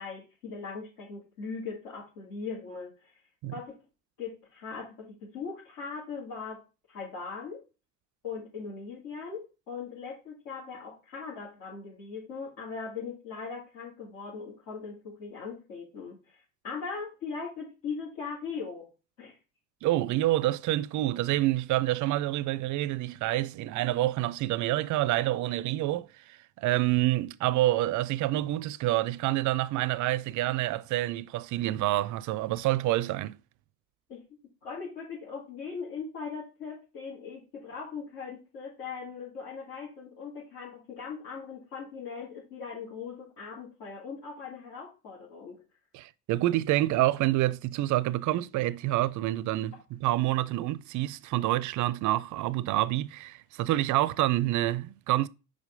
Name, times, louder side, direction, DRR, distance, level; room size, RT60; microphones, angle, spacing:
voice 1, 0.0-3.1 3.5-3.8 4.2-6.6 6.9-7.6 8.2-18.9 19.2-19.3 34.1-34.2 34.6-45.6, left 5 dB, 70° left, 2.4 m, -40 dB
voice 2, 19.8-33.4 45.9-55.3, right 15 dB, 50° right, 0.5 m, -27 dB
5.0 x 4.1 x 5.1 m
hypercardioid pair, 60°, 40 cm